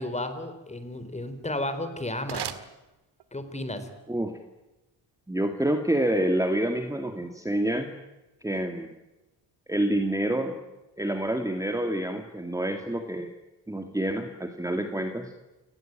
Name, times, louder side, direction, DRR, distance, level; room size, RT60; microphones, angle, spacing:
voice 1, 0.0-2.5 3.3-3.9, left 1 dB, 15° left, 10 dB, 4.1 m, -33 dB
sound 1, 2.1-3.5, right 9 dB, 70° right, 2.0 m, -40 dB
voice 2, 5.3-7.9 8.4-8.9 9.7-10.6 11.0-13.3 13.7-15.3, right 1 dB, 10° right, 6 dB, 2.2 m, -27 dB
29.0 x 19.0 x 9.0 m, 1.0 s
cardioid pair, 120°, 42 cm